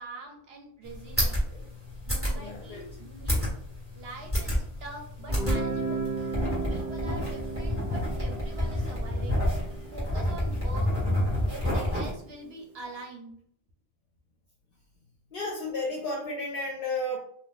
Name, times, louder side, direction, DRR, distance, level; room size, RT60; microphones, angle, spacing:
voice 1, 0.0-1.5 2.1-3.5 3.9-6.0 6.7-9.4 9.9-10.9 11.5-13.4, right 2 dB, 70° right, 2 dB, 1.0 m, -44 dB
sound 1, 0.9-12.1, left 1 dB, 10° right, 1.5 m, -29 dB
voice 2, 2.3-2.8 15.3-17.2, left 2 dB, 60° left, -3 dB, 0.8 m, -32 dB
Guitar, 5.3-11.1, right 3 dB, 45° right, 1.0 m, -35 dB
2.6 x 2.4 x 3.8 m, 0.65 s
omnidirectional pair, 1.1 m